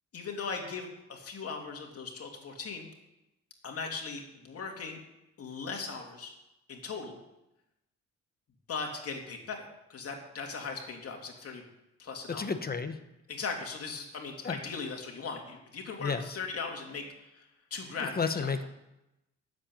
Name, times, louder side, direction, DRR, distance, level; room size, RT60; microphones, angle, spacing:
voice 1, 0.1-2.9 3.6-5.0 5.4-6.3 6.7-7.2 8.7-11.6 12.0-12.5 13.3-17.1 17.3-18.5, left 4 dB, 50° left, 1 dB, 2.9 m, -39 dB
voice 2, 12.4-13.0 14.4-14.6 16.0-16.2 18.2-18.7, left 5 dB, 30° left, 9 dB, 1.1 m, -31 dB
9.9 x 7.8 x 8.9 m, 0.91 s
cardioid pair, 90°, 30 cm